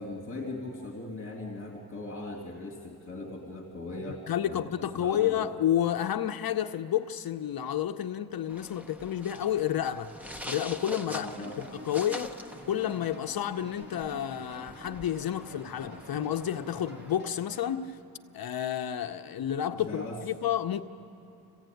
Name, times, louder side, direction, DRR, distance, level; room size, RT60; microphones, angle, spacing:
voice 1, 0.0-5.5 11.0-11.6 19.7-20.2, left 2 dB, 30° left, 2.4 m, -39 dB
voice 2, 4.3-10.1 10.4-11.3 11.7-12.3 12.7-18.0 18.3-20.8, left 10 dB, 60° left, 0.7 m, -30 dB
sound 1, 8.5-17.2, equal, 5° right, 0.9 m, -45 dB
sound 2, 10.9-17.7, equal, 25° right, 3.1 m, -48 dB
27.5 x 15.5 x 9.2 m
wide cardioid pair, 125°, 40 cm